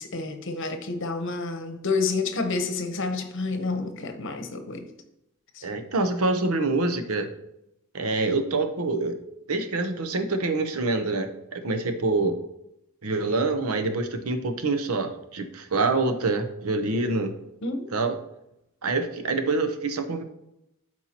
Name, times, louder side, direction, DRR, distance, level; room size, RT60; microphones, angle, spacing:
voice 1, 0.0-4.9 5.5-5.7 17.6-18.0, left 3 dB, 60° left, 7 dB, 0.9 m, -29 dB
voice 2, 5.6-7.3 7.9-9.2 9.5-12.4 13.0-17.3 17.9-18.2 18.8-20.2, right 3 dB, 85° right, 7 dB, 0.8 m, -26 dB
12.0 x 4.5 x 2.9 m, 0.84 s
head